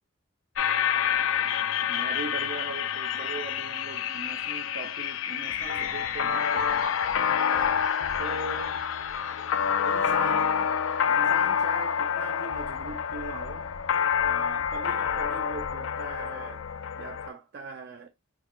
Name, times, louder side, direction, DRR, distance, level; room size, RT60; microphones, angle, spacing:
sound 1, 0.6-17.3, left 8 dB, 75° left, 0.4 m, -27 dB
voice 1, 1.9-6.9 7.5-7.6 8.2-8.8 9.8-10.7 11.1-13.7 14.2-16.7 17.0-18.1, right 4 dB, 55° right, 0.4 m, -40 dB
4.4 x 2.2 x 2.4 m
head